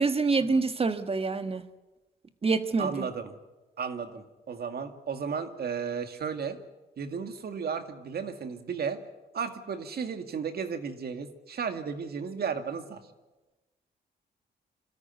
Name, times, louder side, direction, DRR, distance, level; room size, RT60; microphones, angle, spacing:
voice 1, 0.0-1.6 2.4-3.0, right 4 dB, 35° right, 10 dB, 1.5 m, -26 dB
voice 2, 2.8-3.3 3.8-6.6 7.0-9.0 9.3-13.0, right 6 dB, 60° right, 7 dB, 2.1 m, -34 dB
26.0 x 13.5 x 9.3 m, 1.1 s
cardioid pair, 90°, 18 cm